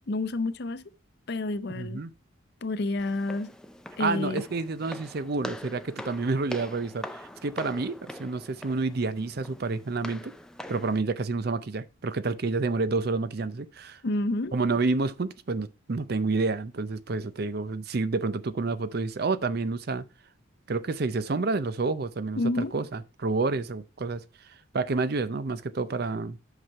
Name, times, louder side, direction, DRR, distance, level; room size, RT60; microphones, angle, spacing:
voice 1, 0.1-0.8 1.3-2.0 2.6-3.5 4.0-4.4 14.0-14.5 22.4-22.7, left 2 dB, 50° left, 0.6 m, -29 dB
voice 2, 1.7-2.1 4.0-10.3 10.7-14.0 14.5-20.0 20.7-24.2 24.7-26.4, right 3 dB, 50° right, 0.5 m, -29 dB
Walk footsteps, 3.0-11.0, left 1 dB, 5° left, 0.4 m, -43 dB
8.0 x 5.8 x 4.6 m
head